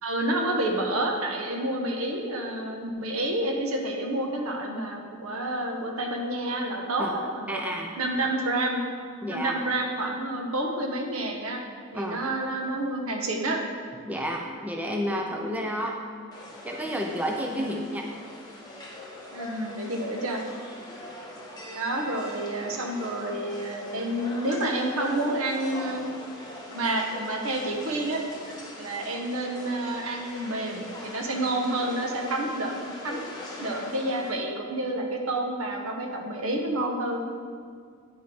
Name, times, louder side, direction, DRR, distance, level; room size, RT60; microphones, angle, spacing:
voice 1, 0.0-7.6 8.0-8.8 9.3-11.6 11.9-13.6 17.5-17.9 19.3-20.4 21.7-26.0 26.7-28.3 28.8-33.2 33.6-37.2, right 1 dB, 75° right, 2 dB, 1.0 m, -29 dB
voice 2, 7.5-7.9 9.2-9.6 11.9-12.2 14.0-16.0 16.6-18.1, equal, 5° right, 1 dB, 0.5 m, -30 dB
sound 1, 16.3-34.3, left 1 dB, 20° left, 1.1 m, -42 dB
9.0 x 5.4 x 4.3 m, 2.1 s
head